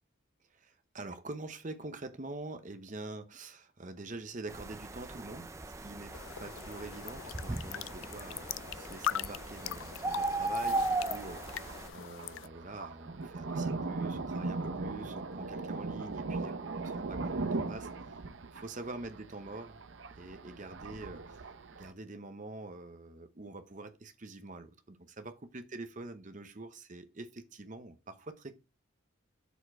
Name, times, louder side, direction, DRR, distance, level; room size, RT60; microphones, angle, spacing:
voice 1, 0.5-5.5 5.8-6.1 6.4-18.2 18.5-19.8 20.2-21.4 21.8-28.5, right 2 dB, 40° right, 0.8 m, -45 dB
sound 1, 4.5-11.9, right 2 dB, 15° right, 0.4 m, -37 dB
sound 2, 6.1-12.5, left 11 dB, 75° left, 0.3 m, -41 dB
Thunder, 10.6-21.9, right 3 dB, 65° right, 0.7 m, -39 dB
7.0 x 4.4 x 4.4 m
head